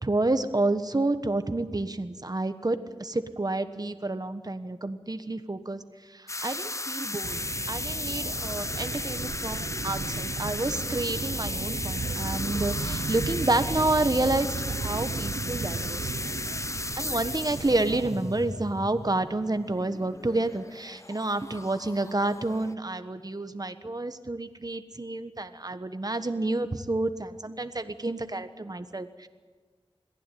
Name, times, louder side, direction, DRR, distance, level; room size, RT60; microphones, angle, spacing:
voice 1, 0.0-5.8 6.1-7.4 7.7-14.5 14.8-16.1 17.0-29.3, right 2 dB, 40° right, 10 dB, 1.3 m, -29 dB
sound 1, 6.3-22.7, left 2 dB, 30° left, 0.7 m, -35 dB
sound 2, 7.2-18.1, right 4 dB, 80° right, 0.6 m, -35 dB
22.5 x 15.5 x 9.3 m, 1.4 s
wide cardioid pair, 45°, 10 cm